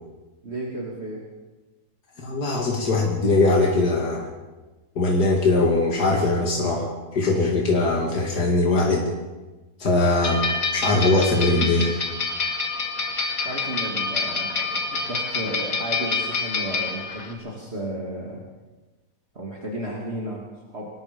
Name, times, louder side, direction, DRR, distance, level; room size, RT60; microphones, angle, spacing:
voice 1, 0.4-1.2 13.4-18.4 19.3-20.9, right 1 dB, 40° right, -2 dB, 2.9 m, -33 dB
voice 2, 2.2-4.3 5.0-9.1 9.8-10.4 10.7-11.9, left 2 dB, 85° left, -1 dB, 2.9 m, -21 dB
sound 1, 10.2-17.3, left 4 dB, 60° left, 2.5 m, -27 dB
25.0 x 20.0 x 5.3 m, 1.2 s
omnidirectional pair, 1.7 m